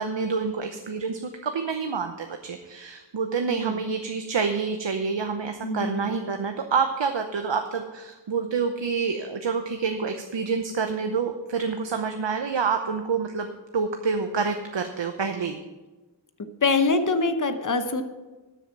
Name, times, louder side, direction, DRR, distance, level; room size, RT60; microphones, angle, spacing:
voice 1, 0.0-13.5 13.7-15.6, right 5 dB, 80° right, 6 dB, 0.8 m, -27 dB
voice 2, 3.5-3.8 5.6-6.1 16.6-18.0, left 3 dB, 45° left, 8 dB, 1.0 m, -24 dB
12.5 x 7.2 x 5.9 m, 1.2 s
wide cardioid pair, 55°, 43 cm